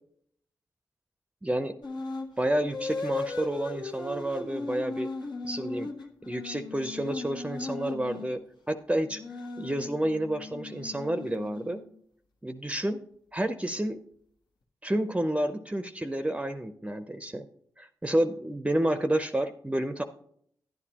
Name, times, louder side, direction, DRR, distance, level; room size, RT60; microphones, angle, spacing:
voice 1, 1.4-1.7 2.4-5.1 5.4-5.9 6.2-8.4 8.7-9.2 9.6-11.8 12.4-13.0 13.3-14.0 14.8-17.5 17.8-20.0, right 1 dB, 15° right, 9 dB, 0.6 m, -29 dB
sound 1, 1.8-2.3 2.7-8.3 9.0-12.0, left 3 dB, 75° left, 1.3 m, -37 dB
10.5 x 10.0 x 2.9 m, 0.66 s
supercardioid pair, 45°, 8 cm